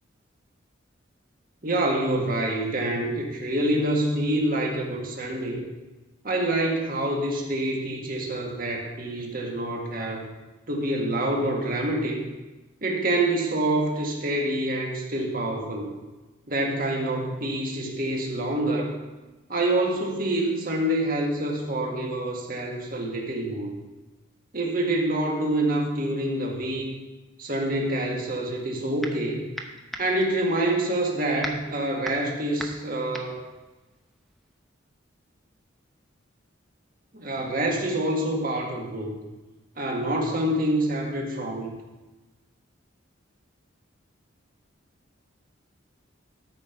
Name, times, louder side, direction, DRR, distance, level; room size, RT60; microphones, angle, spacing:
voice 1, 1.6-5.6 6.2-10.2 10.7-12.2 12.8-15.9 16.5-18.9 19.5-23.7 24.5-26.9 27.4-29.4 30.0-33.4 37.1-39.1 39.8-41.7, right 1 dB, 45° right, 0 dB, 1.7 m, -26 dB
sound 1, 28.5-29.3 29.5-34.6, equal, ahead, 0.7 m, -38 dB
13.0 x 5.1 x 5.8 m, 1.1 s
head